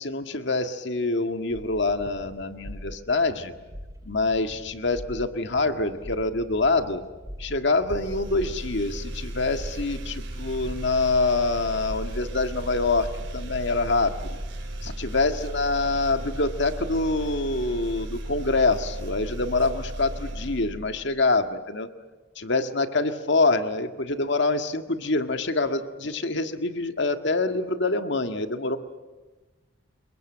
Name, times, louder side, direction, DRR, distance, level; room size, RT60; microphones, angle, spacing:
voice 1, 0.0-3.5 4.0-7.0 7.4-13.1 13.3-14.4 14.8-21.9 22.4-28.8, left 3 dB, 60° left, 8 dB, 1.8 m, -25 dB
sound 1, 1.5-15.1, equal, 15° right, 5.5 m, -43 dB
sound 2, 7.9-21.3, right 1 dB, 60° right, 4.3 m, -35 dB
28.0 x 23.0 x 7.9 m, 1.2 s
head